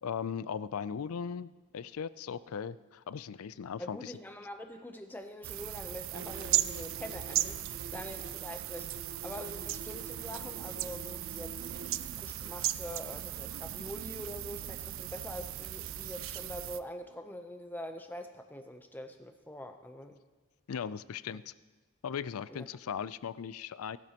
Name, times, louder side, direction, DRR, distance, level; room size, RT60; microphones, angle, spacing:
voice 1, 0.0-4.1 20.7-21.5 22.0-24.0, left 7 dB, 75° left, 17 dB, 0.4 m, -38 dB
voice 2, 3.8-8.9 9.2-11.6 12.2-20.2 22.5-22.7, left 1 dB, 10° left, 6 dB, 0.7 m, -44 dB
sound 1, 5.4-16.8, right 13 dB, 65° right, 0.4 m, -37 dB
sound 2, 6.1-11.9, right 2 dB, 45° right, 0.9 m, -48 dB
18.0 x 12.0 x 2.9 m, 1.3 s
head